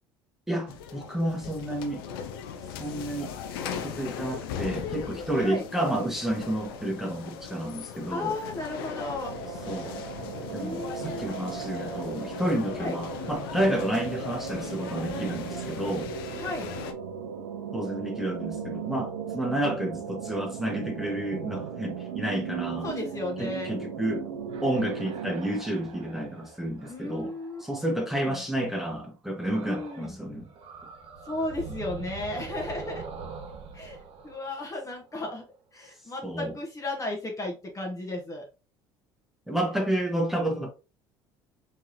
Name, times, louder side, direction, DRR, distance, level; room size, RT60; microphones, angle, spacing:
voice 1, 0.5-2.0 2.8-3.3 3.6-8.3 9.7-9.9 10.5-16.1 17.7-22.9 23.4-24.2 24.6-27.3 27.6-30.5 36.2-36.5 39.5-40.7, right 1 dB, ahead, 1.4 m, -30 dB
sound 1, 0.7-16.9, left 7 dB, 80° left, 0.5 m, -38 dB
voice 2, 8.1-9.3 10.5-11.5 12.8-13.0 16.4-16.7 22.8-23.7 26.9-27.6 28.2-28.4 29.6-30.2 31.2-33.0 33.7-34.0 34.2-35.4 35.7-38.4, left 2 dB, 25° left, 1.3 m, -34 dB
sound 2, 9.2-25.4, right 7 dB, 85° right, 0.6 m, -37 dB
sound 3, 24.5-28.3 29.4-30.2 30.4-35.3, right 5 dB, 50° right, 0.8 m, -43 dB
3.6 x 3.3 x 2.8 m
hypercardioid pair, 70°, 12 cm